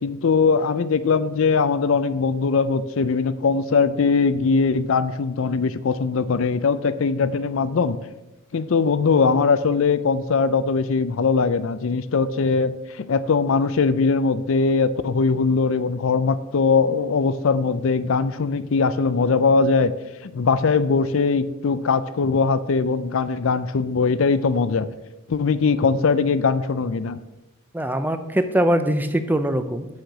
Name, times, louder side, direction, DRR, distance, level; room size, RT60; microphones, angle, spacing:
voice 1, 0.0-8.0 8.5-19.9 20.2-24.9 25.3-27.2, left 4 dB, 70° left, 14 dB, 0.5 m, -21 dB
voice 2, 27.7-29.9, right 1 dB, 10° right, 9 dB, 0.5 m, -22 dB
6.4 x 6.4 x 7.1 m, 1.0 s
head